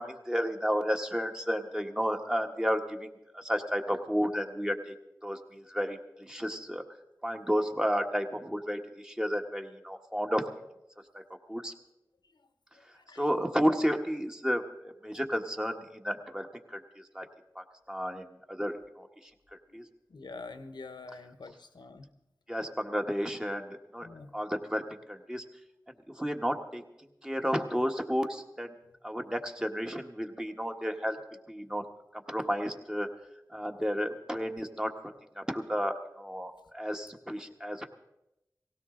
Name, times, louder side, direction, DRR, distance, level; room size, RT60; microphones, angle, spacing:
voice 1, 0.0-4.9 5.2-6.8 7.2-10.4 11.1-11.2 11.5-11.7 13.1-17.3 17.5-19.8 22.5-24.1 24.3-24.8 25.1-25.4 26.1-26.8 27.2-28.7 29.0-31.2 31.5-31.8 32.1-33.1 33.5-34.9 35.3-37.8, equal, 10° right, 4 dB, 1.5 m, -32 dB
voice 2, 19.7-22.0 24.0-24.3 33.5-33.6, left 3 dB, 85° left, 8 dB, 1.1 m, -46 dB
18.5 x 16.5 x 3.8 m, 0.89 s
cardioid pair, 45°, 7 cm